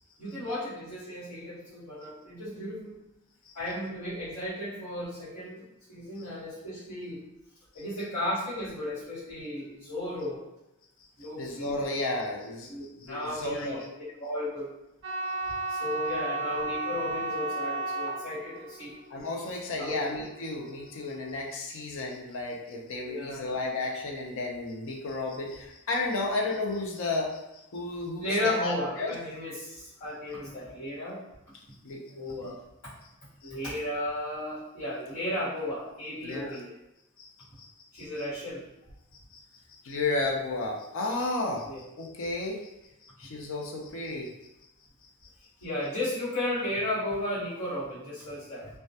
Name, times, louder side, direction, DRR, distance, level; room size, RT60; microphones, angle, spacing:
voice 1, 0.2-3.0 3.5-7.2 7.7-10.4 11.2-11.9 12.7-13.8 14.2-14.7 15.7-18.9 19.8-20.1 23.0-23.5 28.2-31.2 32.1-32.6 33.4-36.7 37.9-38.6 41.7-41.8 45.6-48.7, left 1 dB, 80° left, -14 dB, 1.2 m, -34 dB
voice 2, 11.4-12.7 13.0-13.9 19.1-27.4 27.7-29.1 31.8-32.1 32.4-32.5 33.4-33.5 36.2-36.6 37.2-37.3 37.6-37.7 37.9-38.0 39.8-41.7 42.0-42.7 43.2-44.3, left 2 dB, 60° left, 0 dB, 0.5 m, -32 dB
sound 1, 15.0-21.2, right 3 dB, 55° right, 0.3 m, -34 dB
2.2 x 2.1 x 2.7 m, 0.90 s
head